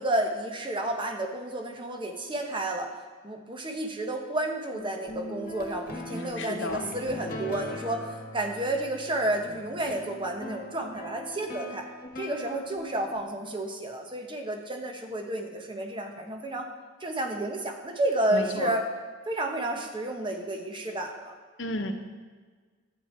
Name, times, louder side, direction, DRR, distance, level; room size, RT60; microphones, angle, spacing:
voice 1, 0.0-2.9 3.2-11.8 12.2-16.7 17.0-18.9 19.3-21.4, right 1 dB, 25° right, 3 dB, 1.1 m, -31 dB
sound 1, 4.7-13.5, left 1 dB, 45° left, 1.4 m, -41 dB
voice 2, 6.4-6.8 18.3-18.7 21.6-21.9, left 2 dB, 65° left, 6 dB, 1.0 m, -32 dB
11.0 x 9.0 x 4.4 m, 1.5 s
head